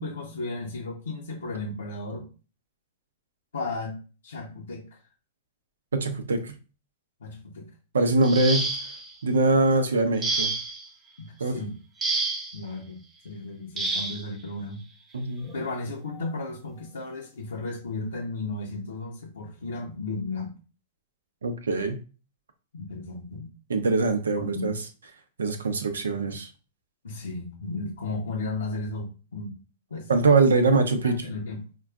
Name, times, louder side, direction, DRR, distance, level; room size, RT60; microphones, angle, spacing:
voice 1, 0.0-2.3 3.5-5.0 7.2-7.7 11.2-11.8 12.5-14.8 15.4-20.6 22.7-23.5 24.4-24.8 27.0-29.6 29.9-30.1 31.0-31.7, left 2 dB, 85° left, 0.6 m, -34 dB
voice 2, 5.9-6.6 7.9-8.6 9.2-10.5 11.4-11.6 15.1-15.5 21.4-22.0 23.7-24.7 25.4-26.5 30.1-31.3, right 3 dB, 90° right, 0.6 m, -23 dB
sound 1, 8.2-9.1 10.2-10.9 12.0-12.6 13.8-14.2 15.4-15.6 16.1-16.3, right 3 dB, 20° right, 0.8 m, -29 dB
5.1 x 2.3 x 2.3 m
hypercardioid pair, 115°, 0 cm